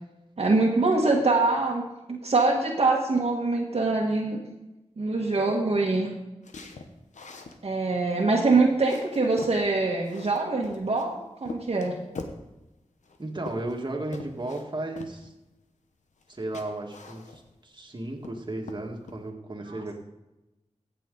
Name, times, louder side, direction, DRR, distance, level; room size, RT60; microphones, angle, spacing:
voice 1, 0.4-4.4 5.0-6.1 7.6-11.9 19.6-19.8, right 3 dB, 60° right, -2 dB, 1.6 m, -24 dB
sound 1, 6.4-7.6 8.1-8.2 8.5-9.6 10.0-11.1 11.5-12.4 13.0-13.9 14.1-14.6 15.0-15.2 16.2-16.3 16.5-17.6 18.0-18.4 18.7-19.2, left 3 dB, 90° left, 1.0 m, -42 dB
voice 2, 13.2-15.3 16.3-19.9, right 2 dB, 40° right, 1 dB, 1.9 m, -34 dB
16.0 x 6.9 x 3.9 m, 0.97 s
cardioid pair, 55°, 12 cm